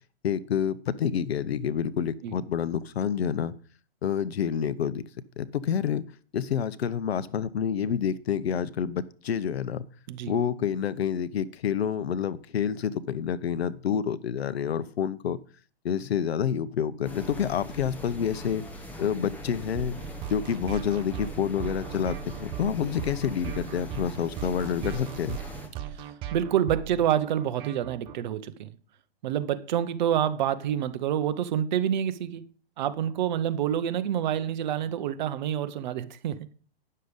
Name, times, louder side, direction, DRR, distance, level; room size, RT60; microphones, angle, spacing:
voice 1, 0.2-3.6 4.0-5.0 5.4-6.0 6.3-9.9 10.2-15.4 15.8-18.6 19.0-20.0 20.3-25.4, left 8 dB, 75° left, 0.8 m, -28 dB
sound 1, 17.0-25.7, equal, 5° left, 1.1 m, -41 dB
sound 2, 19.8-28.1, right 11 dB, 15° right, 0.5 m, -38 dB
voice 2, 26.0-28.7 29.2-32.4 32.8-36.5, right 10 dB, 45° right, 0.8 m, -27 dB
9.7 x 6.6 x 5.2 m
hypercardioid pair, 140°, 31 cm